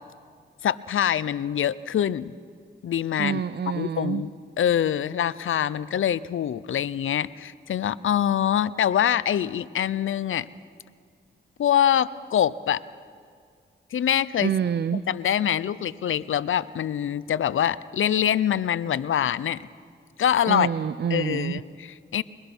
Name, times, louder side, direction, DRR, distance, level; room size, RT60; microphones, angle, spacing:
voice 1, 0.6-2.3 2.8-3.4 3.7-4.3 4.6-10.5 11.6-12.8 13.9-14.5 14.9-19.6 20.2-20.7 21.1-22.2, left 9 dB, 85° left, 18 dB, 0.6 m, -24 dB
voice 2, 3.2-4.2 14.4-15.0 20.5-21.6, right 7 dB, 55° right, 15 dB, 0.5 m, -27 dB
22.5 x 21.0 x 6.1 m, 2.1 s
cardioid pair, 55°, 20 cm